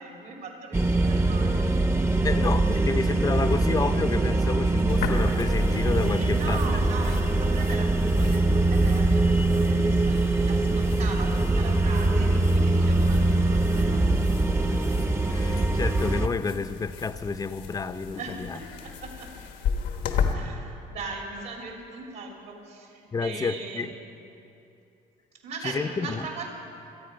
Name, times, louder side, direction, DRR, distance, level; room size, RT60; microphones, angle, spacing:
voice 1, 0.0-1.7 4.4-4.5 6.2-14.1 18.1-19.3 20.3-24.1 25.4-26.5, right 4 dB, 75° right, 0 dB, 3.1 m, -39 dB
sound 1, 0.7-16.3, right 2 dB, 15° right, 0.7 m, -23 dB
voice 2, 2.2-6.6 14.7-15.0 15.3-18.6 23.1-23.9 25.6-26.2, left 4 dB, 20° left, 11 dB, 0.6 m, -30 dB
sound 2, 4.9-20.3, left 7 dB, 85° left, 1.3 m, -36 dB
26.5 x 8.9 x 5.2 m, 2.7 s
cardioid pair, 110°, 17 cm